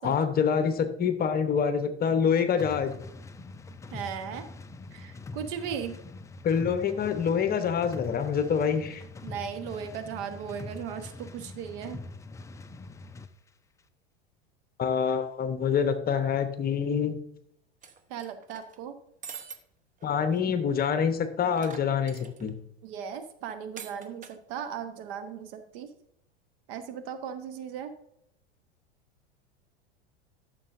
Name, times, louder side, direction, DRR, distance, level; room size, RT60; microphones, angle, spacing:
voice 1, 0.0-3.0 6.4-9.0 14.8-17.2 20.0-22.5, left 7 dB, 30° left, 9 dB, 1.0 m, -26 dB
sound 1, 2.6-13.3, left 3 dB, 10° left, 0.4 m, -43 dB
voice 2, 3.9-4.4 4.9-5.9 9.2-12.0 18.1-18.9 22.8-25.9 26.7-27.9, right 8 dB, 55° right, 9 dB, 1.3 m, -37 dB
toolbox automobile workshop, 17.8-18.8 19.2-19.6 20.0-20.1 20.3-20.4 21.6-22.5 23.8-24.4, right 6 dB, 25° right, 1.0 m, -44 dB
12.5 x 6.7 x 2.6 m, 0.73 s
hypercardioid pair, 90°, 33 cm